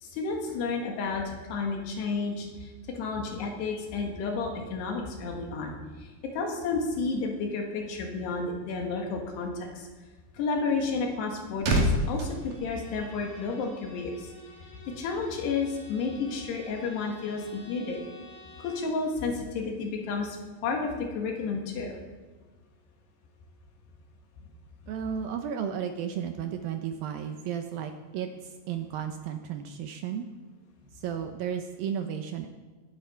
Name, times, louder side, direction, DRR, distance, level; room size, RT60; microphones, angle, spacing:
voice 1, 0.0-1.2 1.5-9.9 10.4-14.3 15.0-18.0 18.6-20.4 20.6-22.0, left 4 dB, 90° left, 1 dB, 3.9 m, -31 dB
sound 1, 11.1-13.6 13.8-14.1, right 1 dB, 55° right, 3.1 m, -29 dB
Bowed string instrument, 12.3-19.0, left 2 dB, 60° left, 5.4 m, -51 dB
voice 2, 24.9-28.3 28.7-30.3 31.0-32.5, right 8 dB, 75° right, 6 dB, 2.3 m, -33 dB
18.5 x 10.5 x 4.5 m, 1.3 s
omnidirectional pair, 4.7 m